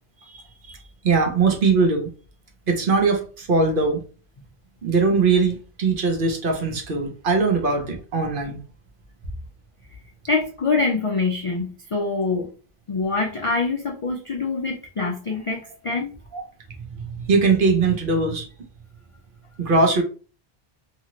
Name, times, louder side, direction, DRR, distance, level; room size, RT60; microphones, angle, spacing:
voice 1, 1.0-2.1 2.7-4.0 4.8-8.6 16.3-16.4 17.0-18.5 19.6-20.0, right 4 dB, 55° right, 2 dB, 0.8 m, -21 dB
voice 2, 10.3-12.5 12.9-16.1, left 4 dB, 55° left, 1 dB, 0.3 m, -25 dB
2.8 x 2.5 x 2.9 m, 0.37 s
omnidirectional pair, 1.1 m